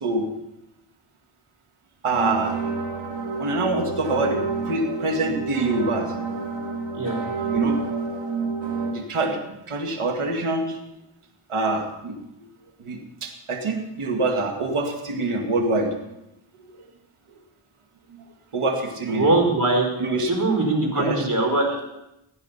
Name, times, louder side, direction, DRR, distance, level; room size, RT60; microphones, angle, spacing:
voice 1, 2.0-2.6 3.4-6.1 7.5-7.8 8.9-10.8 11.5-12.1 12.8-16.1 18.1-18.2 18.5-19.3 20.0-20.3 21.0-21.3, right 2 dB, 85° right, 3 dB, 2.2 m, -25 dB
sound 1, 2.1-8.9, right 4 dB, 60° right, 2.8 m, -29 dB
voice 2, 19.1-19.9 20.3-21.8, right 2 dB, 40° right, 2 dB, 4.7 m, -21 dB
16.0 x 9.9 x 5.7 m, 0.87 s
cardioid pair, 60°, 50 cm